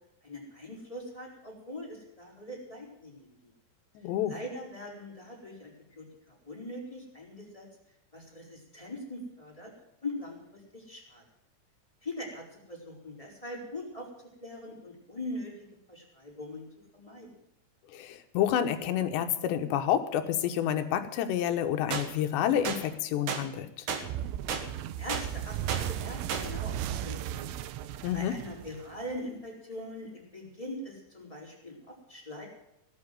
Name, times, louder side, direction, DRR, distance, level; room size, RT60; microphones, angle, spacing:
voice 1, 0.2-3.5 4.2-7.7 8.1-9.7 10.0-11.2 12.0-14.1 14.4-15.5 15.9-16.6 16.9-17.3 24.7-27.5 27.9-32.5, left 1 dB, 5° left, -2 dB, 3.9 m, -42 dB
voice 2, 4.0-4.3 17.9-23.9 28.0-28.3, left 10 dB, 75° left, 8 dB, 3.2 m, -29 dB
sound 1, 21.9-22.1 22.6-22.8 23.3-23.4 23.9-24.0 24.5-24.6 25.1-25.2 25.7-25.8 26.3-26.4, right 6 dB, 60° right, 2.4 m, -32 dB
sound 2, 24.0-29.2, right 11 dB, 90° right, 3.3 m, -36 dB
17.5 x 9.0 x 7.6 m, 0.84 s
omnidirectional pair, 5.4 m